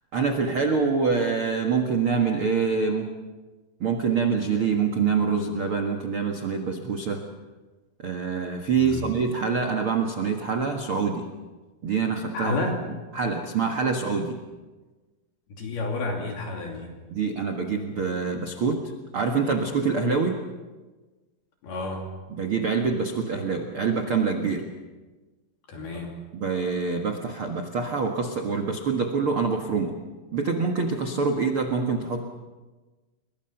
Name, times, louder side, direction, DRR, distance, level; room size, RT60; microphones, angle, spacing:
voice 1, 0.1-3.1 3.8-7.2 8.0-11.3 11.8-12.6 13.1-14.4 17.1-18.8 19.1-20.4 22.3-24.6 26.3-29.9 30.3-32.2, right 5 dB, 75° right, 3 dB, 1.2 m, -25 dB
voice 2, 12.3-12.8 15.5-16.9 21.6-22.1 25.7-26.1, left 3 dB, 60° left, 0 dB, 4.5 m, -30 dB
29.0 x 24.0 x 5.9 m, 1.3 s
omnidirectional pair, 5.3 m